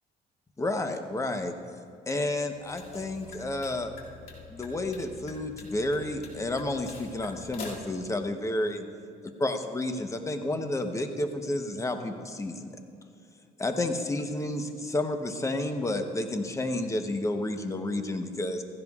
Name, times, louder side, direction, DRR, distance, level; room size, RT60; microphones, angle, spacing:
voice 1, 0.6-1.5 2.1-3.9 4.5-8.8 9.4-12.7 13.6-18.6, left 1 dB, 15° left, 6 dB, 0.9 m, -30 dB
sound 1, 2.5-8.0, left 4 dB, 60° left, 2.4 m, -46 dB
16.0 x 15.5 x 2.4 m, 2.4 s
cardioid pair, 110°, 17 cm